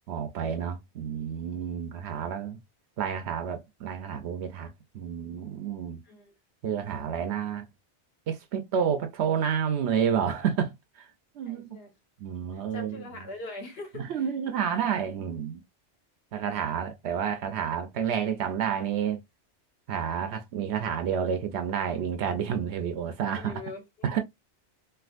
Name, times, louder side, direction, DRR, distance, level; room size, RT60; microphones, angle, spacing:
voice 1, 0.1-2.6 3.0-6.0 6.6-7.6 8.3-11.1 11.3-11.8 12.2-12.9 13.9-15.6 16.3-19.2 19.9-23.5 24.0-24.2, right 8 dB, 70° right, 0.8 m, -30 dB
voice 2, 6.0-6.3 11.5-11.9 12.5-14.3 23.2-24.2, left 2 dB, 60° left, 1.2 m, -42 dB
3.4 x 2.4 x 2.4 m
omnidirectional pair, 1.2 m